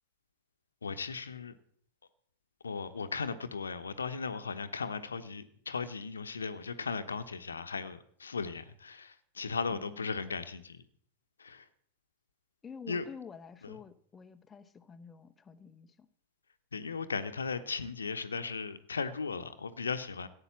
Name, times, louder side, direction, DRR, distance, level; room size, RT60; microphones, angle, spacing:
voice 1, 0.8-1.5 2.6-10.8 11.4-11.7 12.9-13.0 13.6-13.8 16.7-20.3, left 5 dB, 75° left, 1.0 m, -37 dB
voice 2, 9.7-10.0 12.6-16.0, left 6 dB, 15° left, 0.9 m, -49 dB
15.5 x 8.9 x 7.3 m
figure-of-eight pair, 90°, 0 cm